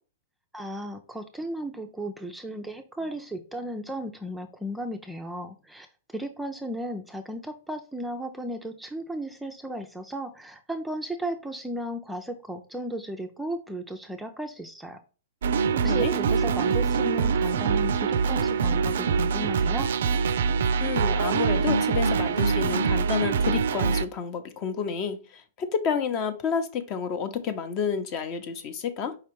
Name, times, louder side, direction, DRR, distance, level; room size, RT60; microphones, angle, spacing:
voice 1, 0.5-5.9 6.1-15.0 15.7-19.9, right 1 dB, 5° right, 5 dB, 0.4 m, -35 dB
sound 1, 15.4-24.0, right 5 dB, 75° right, 0.4 m, -24 dB
voice 2, 15.8-16.2 20.8-29.2, left 6 dB, 35° left, 10 dB, 0.7 m, -30 dB
4.9 x 3.2 x 3.0 m, 0.36 s
hypercardioid pair, 140°, 0 cm